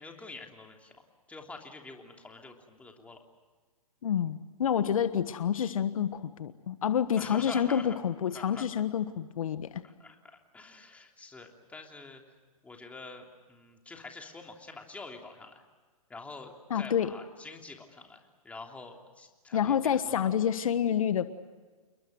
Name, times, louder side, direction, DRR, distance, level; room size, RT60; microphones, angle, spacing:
voice 1, 0.0-3.2 7.2-7.9 8.3-8.7 9.8-10.2 10.5-12.2 12.6-15.6 16.1-20.1, left 3 dB, 5° left, 2 dB, 3.1 m, -46 dB
voice 2, 4.0-9.8 16.7-17.1 19.5-21.2, left 8 dB, 65° left, 12 dB, 1.4 m, -28 dB
29.0 x 22.0 x 7.9 m, 1.4 s
hypercardioid pair, 135°, 19 cm